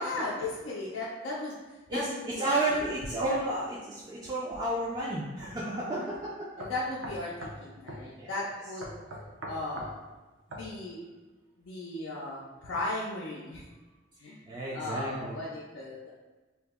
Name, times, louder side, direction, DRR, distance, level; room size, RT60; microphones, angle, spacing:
voice 1, 0.0-2.6 3.3-3.4 5.9-6.1 6.6-9.0 9.5-10.0 10.5-11.1 11.6-13.7 14.2-16.1, left 2 dB, 80° left, -5 dB, 0.4 m, -36 dB
voice 2, 2.4-6.5 8.2-8.3 14.5-15.4, right 2 dB, 20° right, -7 dB, 0.3 m, -32 dB
sound 1, 5.4-5.6 6.1-6.2 6.6-7.6 7.9-8.0 8.8-9.9 10.5-10.7, right 1 dB, 80° right, 0.5 m, -41 dB
2.7 x 2.0 x 3.4 m, 1.2 s
head